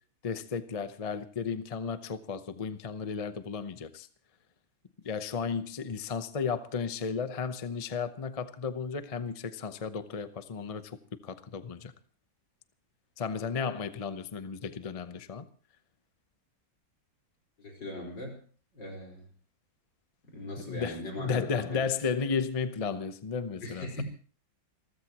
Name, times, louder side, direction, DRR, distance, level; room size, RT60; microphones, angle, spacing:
voice 1, 0.2-4.1 5.0-11.0 11.2-11.9 13.2-15.5 20.7-24.0, left 5 dB, 45° left, 0.4 m, -34 dB
voice 2, 17.6-18.4 18.7-19.3 20.3-21.8 23.6-24.0, left 1 dB, 65° left, 5.4 m, -39 dB
28.0 x 14.5 x 3.0 m
omnidirectional pair, 2.1 m